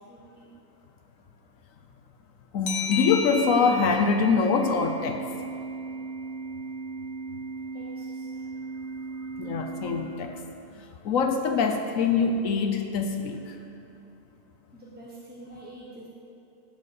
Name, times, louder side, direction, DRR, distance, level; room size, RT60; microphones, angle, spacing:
voice 1, 0.1-0.5 7.7-8.4 14.7-16.1, right 1 dB, 5° right, -6 dB, 0.9 m, -46 dB
voice 2, 2.5-5.3 9.4-10.4 10.8-13.6, left 5 dB, 60° left, 4 dB, 1.0 m, -24 dB
sound 1, 2.7-6.0, left 4 dB, 75° left, 1.3 m, -35 dB
Organ, 4.6-10.6, right 4 dB, 50° right, 0.8 m, -37 dB
11.0 x 4.9 x 8.2 m, 2.8 s
omnidirectional pair, 1.8 m